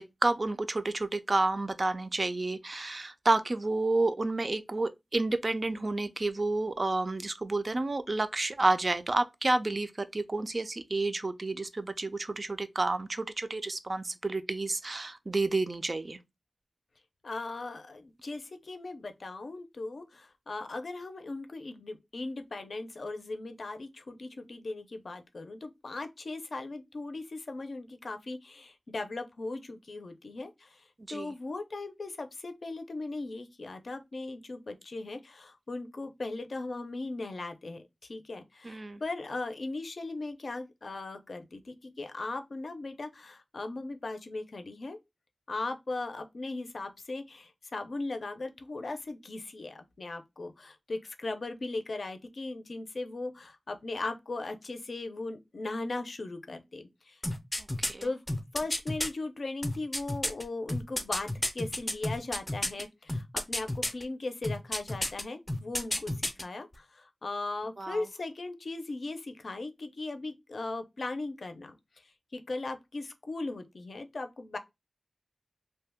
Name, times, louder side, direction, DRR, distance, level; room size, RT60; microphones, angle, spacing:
voice 1, 0.0-16.2 31.1-31.3 38.6-39.0 57.8-58.1 67.8-68.0, right 2 dB, 45° right, 0.3 m, -30 dB
voice 2, 17.2-30.8 31.1-45.0 45.5-57.2 58.0-58.2 58.5-66.1 66.4-71.7 72.3-74.6, left 2 dB, 70° left, 0.5 m, -38 dB
sound 1, 57.2-59.1 59.6-62.8 63.1-64.0 64.4-65.2 65.5-66.4 66.7-66.8, left 1 dB, 15° left, 0.5 m, -31 dB
2.7 x 2.2 x 3.3 m
wide cardioid pair, 85°, 0 cm